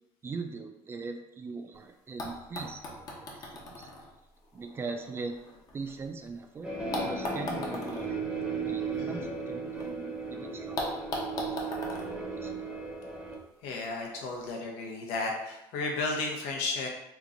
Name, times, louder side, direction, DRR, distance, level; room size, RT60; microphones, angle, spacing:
voice 1, 0.2-3.9 4.5-5.4 5.7-6.7 7.0-8.3 8.7-11.0 11.4-11.7 12.1-12.7, right 4 dB, 25° right, 5 dB, 0.3 m, -41 dB
sound 1, 1.7-1.8 2.2-6.3 6.9-9.9 10.2-10.3 10.8-13.1 14.1-14.2, left 1 dB, 40° left, 0.7 m, -39 dB
sound 2, 6.6-13.4, right 4 dB, 10° right, 0.7 m, -35 dB
voice 2, 9.0-9.3 13.6-16.9, left 3 dB, 90° left, 0 dB, 0.8 m, -33 dB
3.0 x 2.5 x 3.8 m, 0.89 s
cardioid pair, 135°, 10 cm